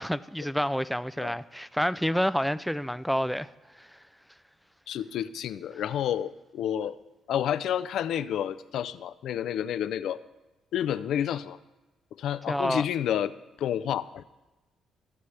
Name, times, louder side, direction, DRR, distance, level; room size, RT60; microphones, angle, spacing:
voice 1, 0.0-3.5 3.8-3.9 12.5-12.8, equal, ahead, 0.3 m, -28 dB
voice 2, 4.9-7.0 7.3-10.2 10.7-11.6 12.2-13.3 13.6-14.2, left 10 dB, 75° left, 0.4 m, -30 dB
18.0 x 6.8 x 3.3 m
cardioid pair, 90°, 0 cm